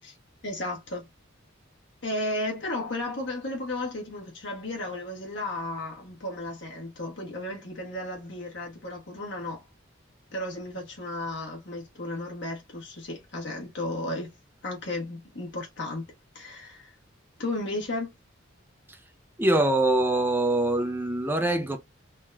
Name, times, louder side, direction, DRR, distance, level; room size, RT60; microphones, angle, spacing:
voice 1, 0.4-1.1 2.0-9.6 10.3-14.3 14.6-16.0 16.3-16.9 17.4-18.1, left 1 dB, 60° left, 1.4 m, -34 dB
voice 2, 19.4-21.8, right 2 dB, 10° right, 0.5 m, -23 dB
3.5 x 3.0 x 2.3 m
head